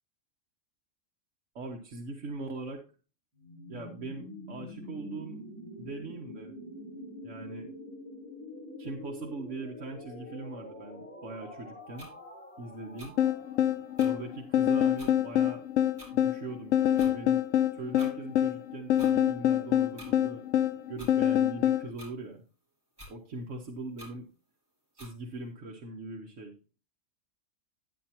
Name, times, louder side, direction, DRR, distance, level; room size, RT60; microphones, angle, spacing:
voice 1, 1.5-2.8 3.7-5.4 5.8-6.5 7.2-7.7 8.8-12.1 12.6-13.2 14.0-15.6 16.1-17.4 17.7-20.4 20.9-22.4 23.1-24.2 24.9-26.5, right 2 dB, 70° right, 1 dB, 1.4 m, -41 dB
sound 1, 3.4-15.2, left 1 dB, 10° left, 4.2 m, -46 dB
sound 2, 12.0-12.1 13.0-13.1 14.0-14.1 15.0-15.1 16.0-16.1 17.0-17.1 18.0-18.1 19.0-19.1 20.0-20.1 21.0-21.1 22.0-22.1 23.0-23.1 24.0-24.1 25.0-25.1, equal, 15° right, 4.9 m, -48 dB
sound 3, 13.2-21.9, left 11 dB, 75° left, 0.9 m, -26 dB
10.0 x 9.9 x 2.9 m, 0.35 s
omnidirectional pair, 1.3 m